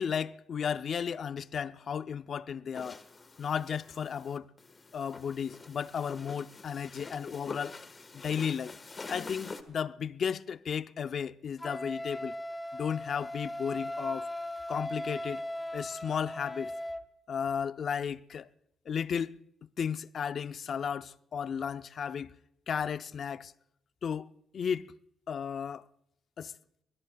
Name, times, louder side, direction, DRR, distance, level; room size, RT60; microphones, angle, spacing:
voice 1, 0.0-3.0 3.4-4.5 4.9-7.8 8.1-8.7 9.1-12.4 12.7-14.3 14.7-15.5 15.7-16.7 17.3-18.5 18.9-19.4 19.8-22.4 22.7-23.5 24.0-24.9 25.3-25.8 26.4-26.5, left 7 dB, 55° left, 0.6 m, -34 dB
sound 1, 2.7-9.6, left 3 dB, 30° left, 1.5 m, -46 dB
Wind instrument woodwind instrument, 11.6-17.0, left 1 dB, 10° left, 0.8 m, -38 dB
24.0 x 20.5 x 2.3 m
cardioid pair, 90°, 0 cm